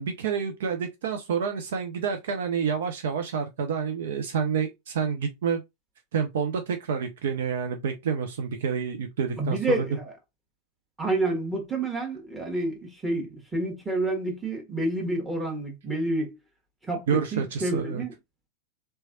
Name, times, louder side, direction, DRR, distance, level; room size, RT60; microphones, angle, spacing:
voice 1, 0.0-5.6 6.1-9.8 17.1-18.0, right 6 dB, 60° right, 0.6 m, -28 dB
voice 2, 9.4-10.1 11.0-16.3 16.9-18.1, right 2 dB, 10° right, 1.4 m, -29 dB
3.4 x 3.2 x 2.6 m
figure-of-eight pair, 90°, 0 cm